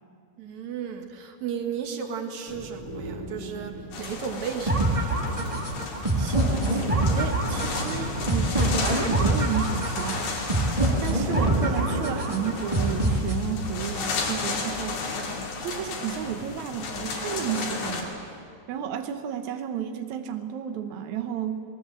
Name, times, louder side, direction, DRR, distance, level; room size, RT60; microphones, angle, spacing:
voice 1, 0.4-5.1, right 7 dB, 50° right, 5 dB, 2.6 m, -34 dB
sound 1, 2.5-8.7, right 1 dB, 35° right, 2.4 m, -40 dB
sound 2, 3.9-18.0, left 4 dB, 75° left, 4.8 m, -33 dB
sound 3, 4.7-13.7, right 1 dB, 15° right, 1.1 m, -25 dB
voice 2, 6.2-10.4 10.7-15.3 15.6-18.4 18.7-21.6, right 8 dB, 85° right, 7 dB, 1.6 m, -33 dB
27.5 x 19.0 x 7.7 m, 2.4 s
omnidirectional pair, 4.9 m